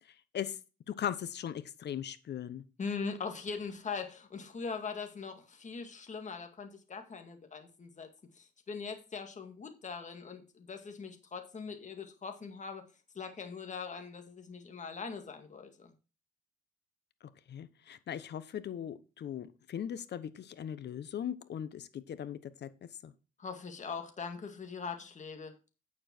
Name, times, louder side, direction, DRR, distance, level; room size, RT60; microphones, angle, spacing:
voice 1, 0.9-2.6 17.5-22.7 23.0-23.1, left 9 dB, 60° left, 14 dB, 1.0 m, -39 dB
voice 2, 2.8-8.1 8.3-12.9 13.1-15.9 23.4-25.6, left 5 dB, 40° left, 5 dB, 2.0 m, -41 dB
8.7 x 7.3 x 4.5 m, 0.32 s
cardioid pair, 90°, 20 cm